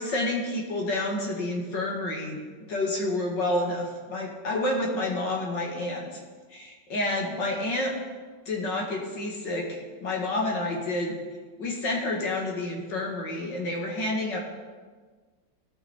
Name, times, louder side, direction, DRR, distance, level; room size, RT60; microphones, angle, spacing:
voice 1, 0.0-2.4 2.7-6.2 6.5-7.9 8.5-11.2 11.6-14.4, left 2 dB, 80° left, -1 dB, 2.5 m, -29 dB
17.0 x 6.0 x 4.4 m, 1.5 s
omnidirectional pair, 1.9 m